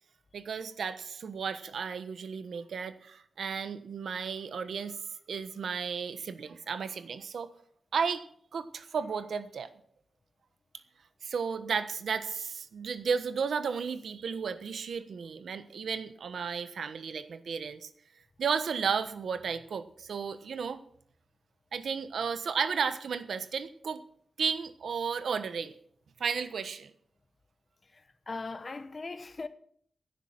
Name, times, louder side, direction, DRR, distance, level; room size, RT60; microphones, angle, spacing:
voice 1, 0.3-7.5 7.9-8.2 8.5-9.7 11.2-17.9 18.4-20.8 21.7-24.0 24.4-25.7 26.2-26.9, right 6 dB, 85° right, 1.2 m, -33 dB
voice 2, 28.3-29.5, left 3 dB, 35° left, 1.1 m, -38 dB
17.0 x 10.0 x 6.0 m
wide cardioid pair, 140°, 0 cm